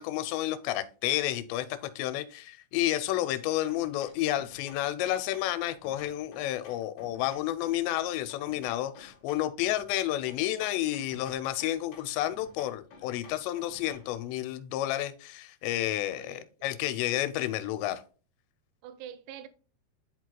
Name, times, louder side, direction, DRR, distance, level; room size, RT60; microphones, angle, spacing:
voice 1, 0.0-18.0, left 14 dB, 85° left, 2.8 m, -31 dB
sound 1, 3.7-14.2, left 4 dB, 60° left, 1.9 m, -54 dB
voice 2, 16.0-16.9 18.8-19.5, right 10 dB, 80° right, 2.7 m, -47 dB
11.0 x 4.6 x 2.2 m
omnidirectional pair, 5.1 m